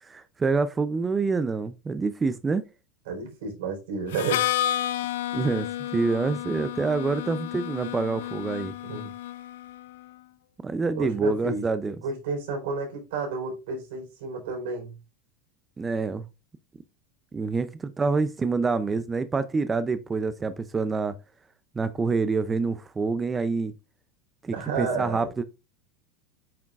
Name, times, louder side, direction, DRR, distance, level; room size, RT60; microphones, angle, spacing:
voice 1, 0.0-2.6 5.3-5.7 5.9-8.7 10.6-12.0 15.8-16.2 17.3-21.2 21.8-23.7 24.4-25.4, right 4 dB, 10° right, 0.4 m, -27 dB
voice 2, 3.1-4.5 8.8-9.1 10.9-15.0 24.5-25.3, right 4 dB, 80° right, 3.9 m, -31 dB
Harmonica, 4.1-9.9, left 12 dB, 90° left, 0.5 m, -31 dB
8.6 x 6.2 x 2.4 m
supercardioid pair, 175°, 0 cm